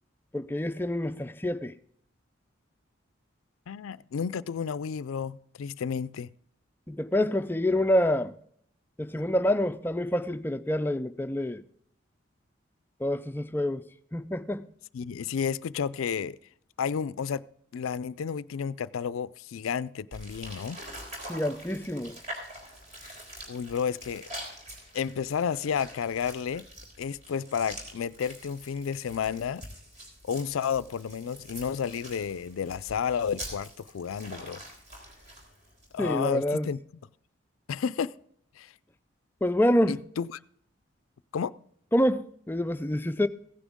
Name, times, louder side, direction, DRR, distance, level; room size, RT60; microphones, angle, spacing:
voice 1, 0.3-1.7 6.9-8.3 9.0-11.6 13.0-13.8 14.1-14.7 21.3-22.2 36.0-36.7 39.4-40.0 41.9-43.3, left 1 dB, 10° left, 0.4 m, -27 dB
voice 2, 3.7-6.3 9.2-9.3 14.9-16.4 16.8-17.4 17.7-20.8 23.5-24.3 24.9-26.7 27.0-29.6 30.2-34.6 35.9-36.8 37.7-38.1 38.6-38.7 39.9-40.4 41.3-41.5, left 7 dB, 85° left, 0.4 m, -31 dB
sound 1, 20.1-36.1, equal, 35° right, 3.6 m, -45 dB
15.5 x 10.0 x 3.6 m
head